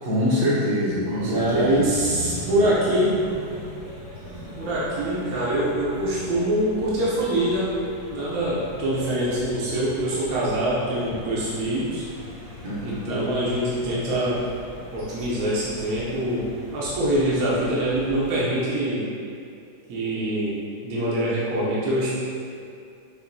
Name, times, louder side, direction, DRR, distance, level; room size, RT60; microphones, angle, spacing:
voice 1, 0.0-1.7 12.6-13.1, equal, 50° right, -7 dB, 1.0 m, -24 dB
voice 2, 1.2-3.2 4.6-7.8 8.1-12.1 12.8-14.4 14.9-16.5 16.7-19.1 19.9-22.1, right 1 dB, 65° right, -8 dB, 1.2 m, -24 dB
sound 1, 1.3-18.4, equal, 85° right, 2.0 m, -39 dB
6.6 x 2.7 x 2.6 m, 2.5 s
omnidirectional pair, 1.8 m